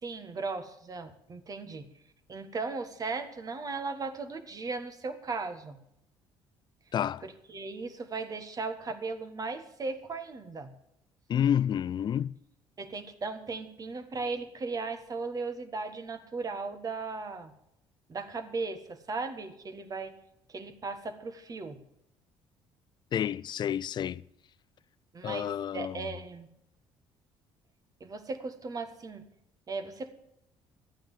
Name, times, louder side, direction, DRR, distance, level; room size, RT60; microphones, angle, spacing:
voice 1, 0.0-1.9 2.3-5.8 7.2-10.7 12.8-17.5 18.1-20.1 20.5-21.8 25.1-26.5 28.0-29.3 29.7-30.1, right 4 dB, 35° right, 1.6 m, -37 dB
voice 2, 6.9-7.3 11.3-12.3 23.1-24.2 25.2-26.1, left 9 dB, 45° left, 0.4 m, -29 dB
13.0 x 9.1 x 7.3 m
supercardioid pair, 85°, 10 cm